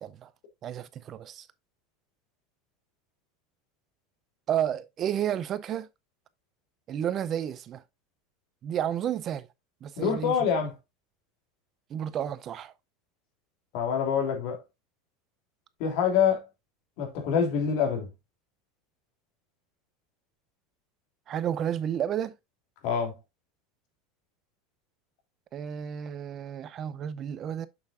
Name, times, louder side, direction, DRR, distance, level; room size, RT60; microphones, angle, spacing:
voice 1, 0.6-1.5 4.5-5.9 6.9-7.8 8.6-9.5 9.8-10.4 11.9-12.7 21.3-22.3 25.5-27.7, right 10 dB, 35° right, 0.5 m, -31 dB
voice 2, 10.0-10.7 13.7-14.6 15.8-16.4 17.0-18.1 22.8-23.1, left 7 dB, 60° left, 3.0 m, -26 dB
7.0 x 6.5 x 2.5 m
supercardioid pair, 130°, 0 cm